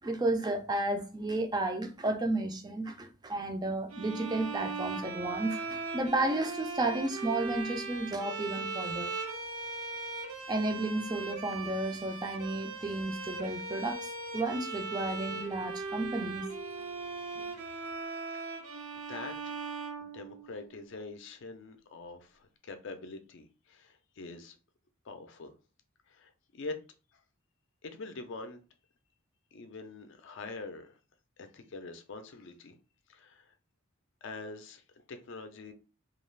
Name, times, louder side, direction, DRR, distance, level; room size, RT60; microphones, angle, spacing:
voice 1, 0.0-9.1 10.5-16.5, right 2 dB, 20° right, 0.4 m, -32 dB
sound 1, 3.9-20.7, right 4 dB, 75° right, 0.6 m, -39 dB
voice 2, 20.0-24.6 25.0-25.5 26.1-26.8 27.1-27.2 27.8-28.6 29.5-31.0 31.4-32.8 33.1-33.5 34.2-35.7, left 3 dB, 60° left, 0.4 m, -44 dB
2.4 x 2.3 x 3.1 m
head